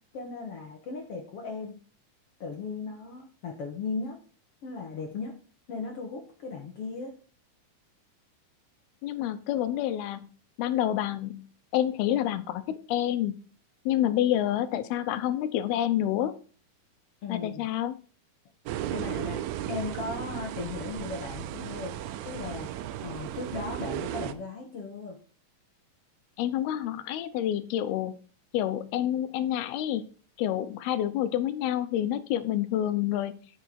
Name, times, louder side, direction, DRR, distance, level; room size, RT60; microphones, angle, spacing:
voice 1, 0.1-1.8 2.4-4.2 4.6-5.3 5.7-7.2 17.2-17.7 18.9-21.9 22.2-22.7 23.0-25.2, left 4 dB, 55° left, 2 dB, 1.7 m, -37 dB
voice 2, 9.0-10.3 10.6-11.5 11.7-13.3 13.9-16.3 17.3-18.0 26.4-28.2 28.5-30.1 30.4-33.4, left 12 dB, 85° left, 12 dB, 2.8 m, -28 dB
sound 1, 18.7-24.3, right 11 dB, 85° right, 2.6 m, -35 dB
9.3 x 6.8 x 4.5 m, 0.38 s
omnidirectional pair, 4.4 m